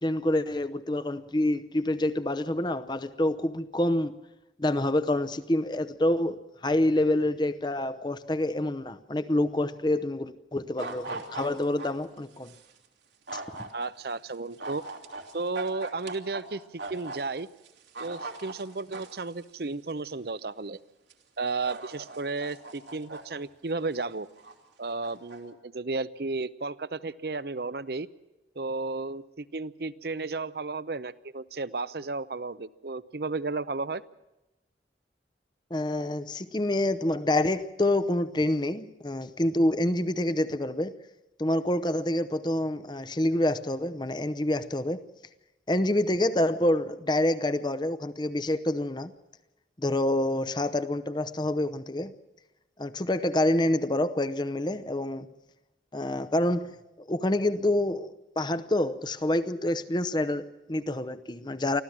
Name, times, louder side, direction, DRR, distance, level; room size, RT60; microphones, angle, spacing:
voice 1, 0.0-4.2 4.6-12.5 13.3-13.4 35.7-40.9 41.4-45.0 45.7-49.1 49.8-52.1 52.8-55.3 55.9-56.7 57.1-61.8, left 1 dB, 25° left, 0.8 m, -27 dB
sound 1, 10.8-11.9 12.4-12.6 13.3-13.7 14.6-16.4 16.8-17.2 17.6-19.2 20.0-20.1 21.1-21.2 21.7-23.2 23.8-24.5 25.0-25.4, right 3 dB, 80° right, 2.7 m, -39 dB
voice 2, 13.7-14.8 15.3-16.6 16.9-17.5 18.0-20.8 21.4-24.3 24.8-28.1 28.6-34.0, right 3 dB, 60° right, 0.7 m, -33 dB
25.0 x 15.0 x 7.4 m
head